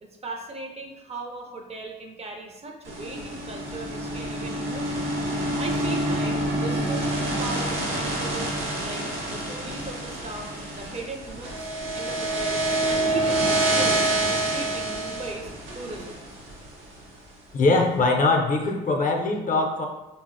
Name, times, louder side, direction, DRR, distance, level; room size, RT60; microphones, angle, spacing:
voice 1, 0.0-5.1 5.6-16.2, right 3 dB, 30° right, 2 dB, 0.4 m, -38 dB
sound 1, 2.8-17.0, right 1 dB, 90° right, 0.6 m, -27 dB
voice 2, 17.5-19.9, left 3 dB, 45° left, 2 dB, 0.4 m, -22 dB
3.2 x 2.0 x 2.5 m, 1.0 s
cardioid pair, 90°, 20 cm